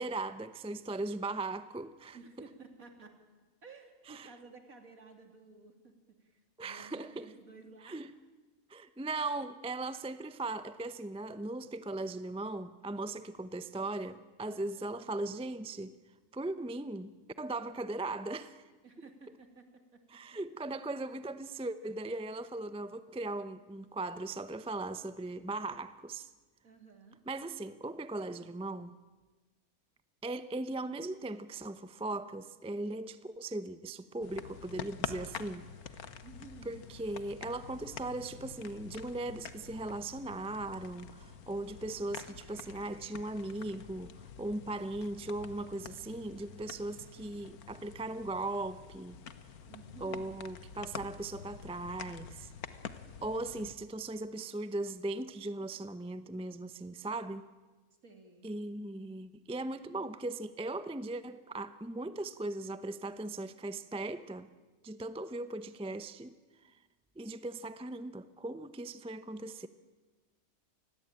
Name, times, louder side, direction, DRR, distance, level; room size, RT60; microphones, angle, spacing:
voice 1, 0.0-2.2 4.1-4.3 6.6-7.3 7.8-8.1 8.7-15.9 16.3-18.6 20.1-26.3 27.3-29.0 30.2-35.7 36.6-49.2 50.0-52.5 53.2-57.5 58.4-64.5 64.8-66.3 67.2-69.7, right 2 dB, 5° right, 0.5 m, -38 dB
voice 2, 2.1-3.2 3.6-8.1 14.5-14.9 18.8-20.2 20.7-20.8 26.6-27.2 36.2-36.8 49.7-50.3 58.0-58.5, right 4 dB, 65° right, 3.4 m, -54 dB
sound 1, 34.2-53.8, left 7 dB, 75° left, 1.7 m, -47 dB
27.5 x 21.0 x 8.9 m
omnidirectional pair, 1.6 m